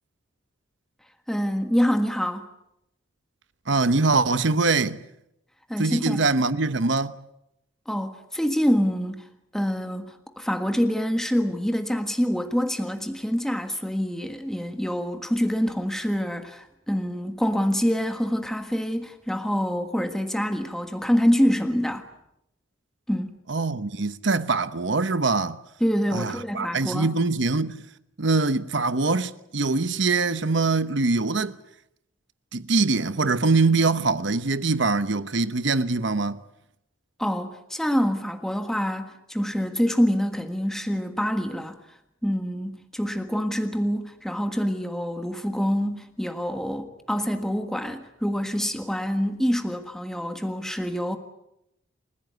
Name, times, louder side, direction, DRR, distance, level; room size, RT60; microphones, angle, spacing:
voice 1, 1.3-2.5 5.7-6.2 7.9-9.3 9.5-22.0 23.1-23.4 25.8-27.1 37.2-41.8 42.2-51.2, equal, ahead, 1.5 m, -26 dB
voice 2, 3.7-5.0 5.8-7.2 23.5-25.6 26.1-27.8 28.2-31.6 32.5-36.4, right 3 dB, 60° right, 1.0 m, -23 dB
28.5 x 16.0 x 9.3 m
head